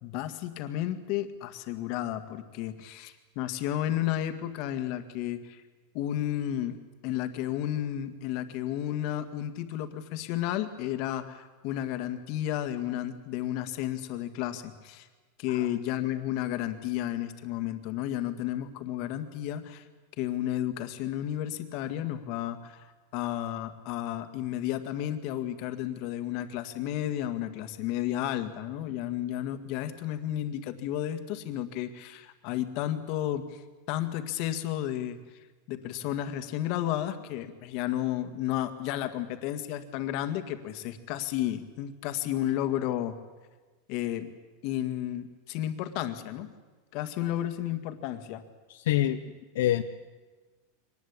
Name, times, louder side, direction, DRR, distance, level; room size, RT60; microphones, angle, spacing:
voice 1, 0.0-5.6 5.9-6.8 7.0-15.1 15.4-19.8 20.2-22.9 23.1-33.6 33.9-35.2 35.7-43.2 43.9-44.3 44.6-46.5 46.9-48.4, left 12 dB, 50° left, 9 dB, 1.9 m, -32 dB
voice 2, 48.7-49.2 49.5-49.8, left 13 dB, 75° left, 7 dB, 1.0 m, -26 dB
24.0 x 19.5 x 8.7 m, 1.3 s
supercardioid pair, 155°, 0 cm